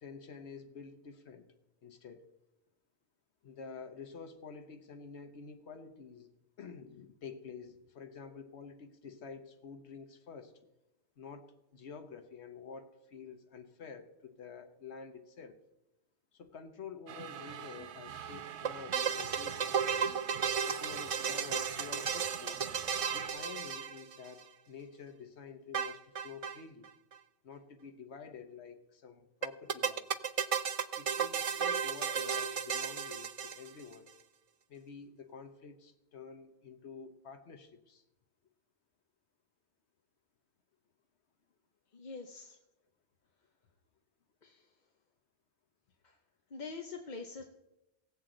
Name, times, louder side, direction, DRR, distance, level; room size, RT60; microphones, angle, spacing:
voice 1, 0.0-1.5 1.8-2.2 3.4-10.5 11.2-11.5 11.7-15.6 16.3-20.1 20.6-22.6 23.1-26.9 27.4-30.3 31.0-34.1 34.7-38.0, left 5 dB, 80° left, 8 dB, 1.3 m, -49 dB
sound 1, 17.1-23.3, right 9 dB, 85° right, 0.9 m, -45 dB
sound 2, 18.6-24.4 25.7-26.6 26.8-26.9 27.1-27.2 29.4-33.9, right 7 dB, 60° right, 0.3 m, -34 dB
voice 2, 41.9-42.6 44.4-44.6 46.0-46.1 46.5-47.4, left 4 dB, 45° left, 4 dB, 0.8 m, -44 dB
17.5 x 7.6 x 3.8 m, 0.94 s
omnidirectional pair, 1.1 m